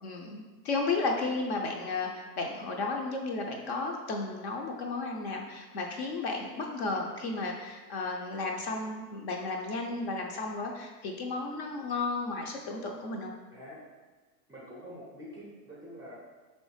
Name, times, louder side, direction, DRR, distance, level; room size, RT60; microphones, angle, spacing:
voice 1, 0.0-13.3, left 3 dB, 45° left, 1 dB, 0.5 m, -33 dB
voice 2, 13.5-13.8 14.5-16.2, equal, 10° right, -5 dB, 0.5 m, -46 dB
4.3 x 3.2 x 3.1 m, 1.3 s
hypercardioid pair, 130°, 49 cm